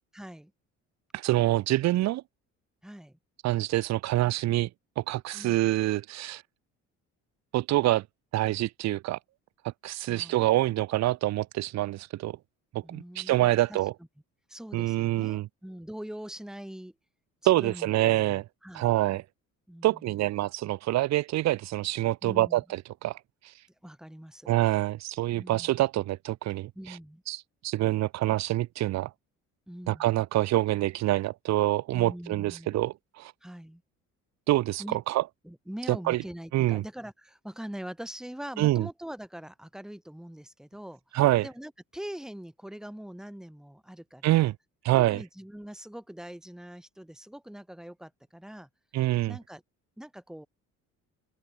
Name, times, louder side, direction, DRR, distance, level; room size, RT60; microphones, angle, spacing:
voice 1, 0.1-0.5 2.8-3.2 5.3-5.6 10.1-10.5 12.8-13.8 14.5-16.9 17.4-18.9 19.7-20.2 22.2-22.6 23.8-24.5 25.3-25.8 26.8-27.2 29.7-30.1 31.9-32.8 33.4-33.8 34.8-35.0 35.4-44.5 45.0-48.7 49.3-49.6 50.0-50.5, equal, ahead, 7.1 m, -43 dB
voice 2, 1.1-2.2 3.4-4.7 5.0-6.4 7.5-8.0 8.3-9.2 9.8-12.4 12.7-13.9 14.7-15.5 17.5-18.4 18.7-19.2 19.8-23.2 24.5-27.0 27.3-29.1 29.9-33.3 34.5-35.2 35.9-36.2 36.5-36.8 38.6-38.9 41.1-41.5 44.2-44.5 44.8-45.2 48.9-49.4, right 16 dB, 65° right, 1.1 m, -26 dB
open air
cardioid pair, 150°, 30 cm